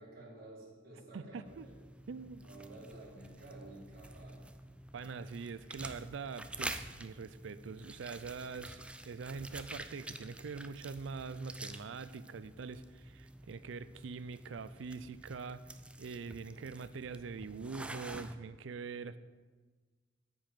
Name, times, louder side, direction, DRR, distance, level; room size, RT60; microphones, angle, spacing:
voice 1, 0.0-1.7 2.4-4.4, right 2 dB, 55° right, -5 dB, 3.0 m, -52 dB
voice 2, 1.1-1.7 2.1-2.4 4.9-15.6 16.0-19.2, right 5 dB, 80° right, 15 dB, 0.4 m, -44 dB
sound 1, 1.5-18.4, right 1 dB, 5° right, 0.3 m, -48 dB
9.1 x 5.2 x 7.5 m, 1.4 s
head